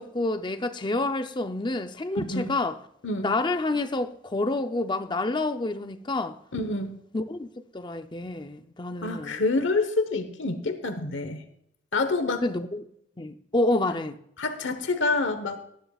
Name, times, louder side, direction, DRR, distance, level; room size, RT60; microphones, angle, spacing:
voice 1, 0.0-2.8 3.2-6.4 7.1-7.5 7.7-9.4 12.4-12.8 13.2-14.2, left 2 dB, 25° left, 0.6 m, -28 dB
voice 2, 6.5-6.9 9.0-11.4 11.9-12.5 14.4-15.6, left 3 dB, 80° left, 1.1 m, -27 dB
19.0 x 13.5 x 2.4 m
head